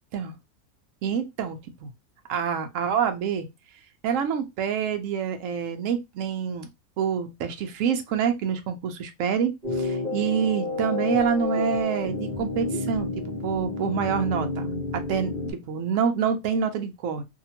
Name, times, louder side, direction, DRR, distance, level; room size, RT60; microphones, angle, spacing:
voice 1, 1.0-1.9 2.3-3.5 4.0-6.7 7.0-17.2, right 7 dB, 65° right, 0.9 m, -27 dB
sound 1, 9.6-15.5, left 3 dB, 30° right, 1.0 m, -30 dB
2.8 x 2.5 x 2.8 m
omnidirectional pair, 1.6 m